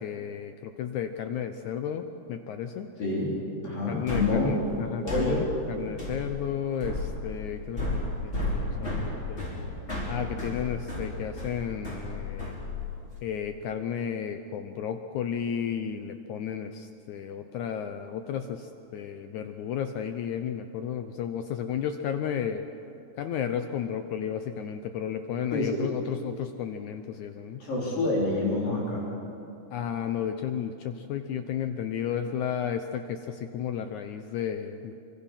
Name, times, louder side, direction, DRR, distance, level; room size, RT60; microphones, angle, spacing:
voice 1, 0.0-2.9 3.9-9.4 10.1-12.5 13.2-22.7 23.2-27.6 29.7-34.9, left 8 dB, 90° left, 8 dB, 1.6 m, -33 dB
voice 2, 3.0-3.3 3.6-4.6 5.0-5.5 25.5-25.9 27.6-29.1, left 2 dB, 60° left, -5 dB, 5.5 m, -27 dB
sound 1, 4.1-13.2, left 2 dB, 15° left, 4.6 m, -33 dB
27.0 x 24.5 x 5.7 m, 2.7 s
omnidirectional pair, 4.5 m